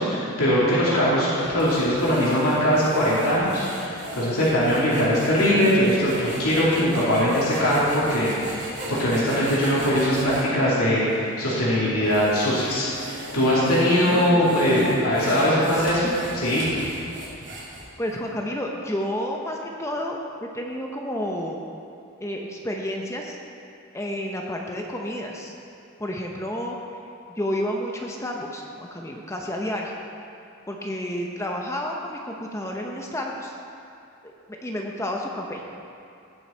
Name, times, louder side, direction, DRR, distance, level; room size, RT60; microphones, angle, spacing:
voice 1, 0.0-16.6, equal, 90° left, -8 dB, 2.8 m, -21 dB
sound 1, 1.3-10.5 11.1-11.2 11.8-18.1, right 1 dB, 50° right, 2.9 m, -38 dB
voice 2, 14.0-14.4 15.3-15.9 18.0-21.6 22.2-23.4 23.9-25.5 26.0-26.8 27.4-29.9 30.7-33.6 34.2-34.3 34.6-35.6, equal, 15° left, 0 dB, 0.7 m, -30 dB
18.0 x 6.3 x 4.4 m, 2.6 s
head